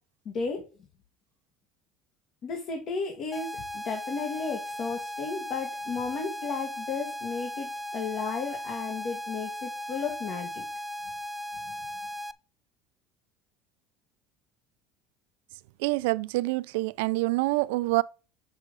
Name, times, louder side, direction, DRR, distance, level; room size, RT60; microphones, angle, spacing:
voice 1, 0.3-0.6 2.4-10.6, left 5 dB, 45° left, 1.8 m, -34 dB
sound 1, 3.3-12.3, left 1 dB, ahead, 0.4 m, -37 dB
voice 2, 15.8-18.0, right 22 dB, 90° right, 0.4 m, -26 dB
6.6 x 6.1 x 5.3 m
cardioid pair, 140°, 0 cm